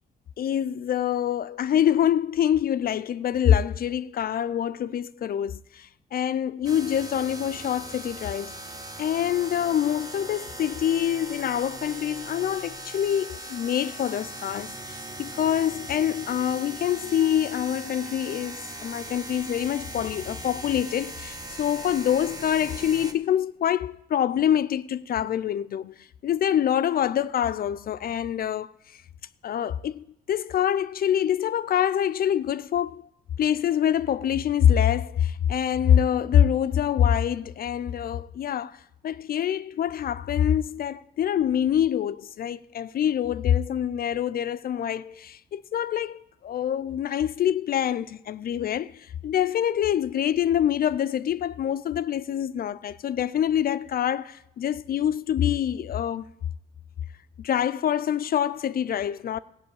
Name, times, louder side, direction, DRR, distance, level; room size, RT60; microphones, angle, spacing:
voice 1, 0.4-8.6 9.0-28.7 29.4-33.1 33.4-56.3 57.4-59.4, left 10 dB, 50° left, 0.4 m, -25 dB
sound 1, 6.6-23.1, right 1 dB, 20° right, 1.1 m, -39 dB
14.5 x 5.4 x 8.6 m
cardioid pair, 90°, 20 cm